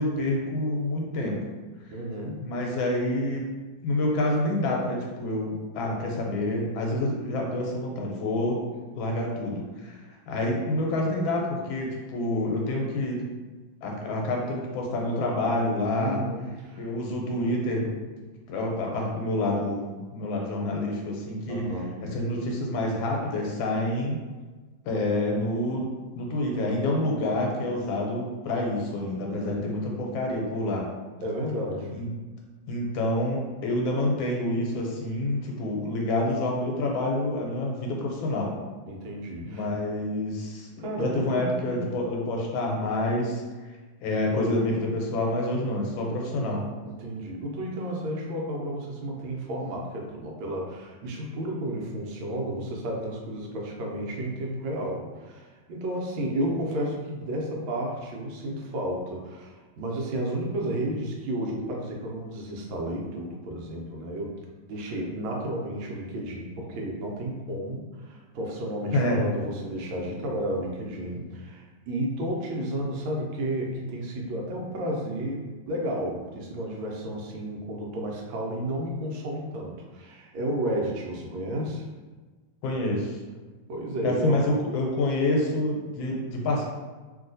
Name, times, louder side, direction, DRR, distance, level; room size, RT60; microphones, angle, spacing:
voice 1, 0.0-1.4 2.4-3.4 3.8-8.6 8.9-10.0 10.3-13.3 13.8-16.2 16.8-17.9 18.5-21.7 22.0-24.2 24.8-25.9 26.1-30.8 32.0-32.1 32.7-38.5 39.4-43.4 44.0-46.7 68.9-69.2 82.6-83.2 84.0-86.6, left 1 dB, 85° left, 0 dB, 1.4 m, -27 dB
voice 2, 1.9-2.4 15.9-16.9 21.5-22.0 29.3-29.7 31.2-32.0 38.9-39.7 40.8-41.8 47.0-64.3 64.7-81.9 83.7-84.5, right 1 dB, 85° right, -1 dB, 1.4 m, -32 dB
3.1 x 2.7 x 2.6 m, 1.3 s
omnidirectional pair, 2.1 m